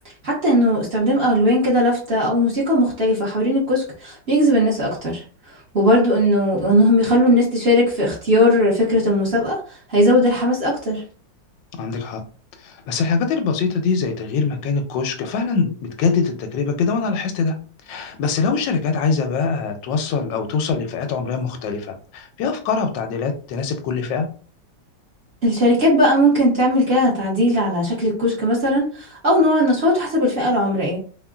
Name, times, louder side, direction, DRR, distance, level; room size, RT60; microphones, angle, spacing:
voice 1, 0.2-5.2 5.7-9.6 9.9-11.0 25.4-31.0, equal, 45° right, -5 dB, 0.9 m, -18 dB
voice 2, 11.7-12.2 12.6-17.6 17.9-24.3, left 5 dB, 85° left, 6 dB, 1.3 m, -23 dB
3.7 x 2.1 x 2.3 m, 0.40 s
omnidirectional pair, 1.9 m